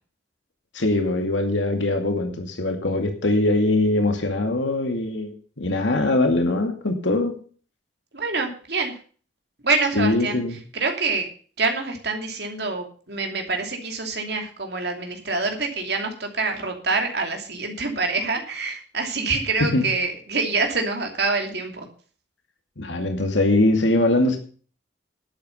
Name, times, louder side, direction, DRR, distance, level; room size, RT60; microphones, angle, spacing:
voice 1, 0.7-7.4 10.0-10.6 19.6-19.8 22.8-24.4, left 2 dB, 90° left, 4 dB, 2.3 m, -22 dB
voice 2, 8.1-8.9 9.6-10.4 10.7-11.3 11.6-21.9, right 3 dB, 60° right, 3 dB, 2.8 m, -26 dB
11.5 x 8.1 x 6.8 m, 0.42 s
head